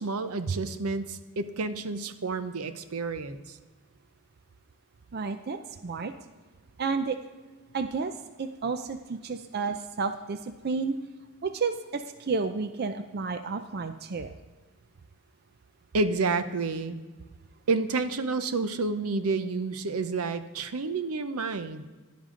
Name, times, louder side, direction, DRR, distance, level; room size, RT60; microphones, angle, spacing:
voice 1, 0.0-3.6 15.9-17.0 17.7-21.9, right 3 dB, 80° right, 11 dB, 0.7 m, -29 dB
voice 2, 5.1-6.1 6.8-7.2 7.7-11.0 11.4-14.3, right 4 dB, 45° right, 9 dB, 0.5 m, -31 dB
12.5 x 10.5 x 3.8 m, 1.3 s
head